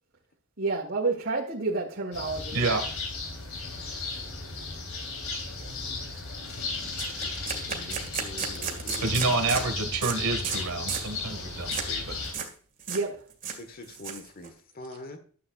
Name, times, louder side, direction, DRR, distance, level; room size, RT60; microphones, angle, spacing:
voice 1, 0.6-2.6 12.9-13.2, right 3 dB, 55° right, 2.5 m, -29 dB
sound 1, 2.1-12.3, left 3 dB, 70° left, 3.4 m, -35 dB
voice 2, 2.5-2.9 9.0-12.2, right 3 dB, 80° right, 1.9 m, -28 dB
sound 2, 5.6-5.7 6.0-6.2 6.5-6.6 7.0-9.7 10.0-10.2 10.4-10.6 10.9-11.1 11.7-11.9 12.2-12.5 12.8-13.0 13.3-14.5, right 7 dB, 40° right, 2.0 m, -34 dB
voice 3, 7.2-9.3 13.5-15.2, left 1 dB, 45° left, 1.4 m, -45 dB
12.5 x 8.6 x 2.5 m
head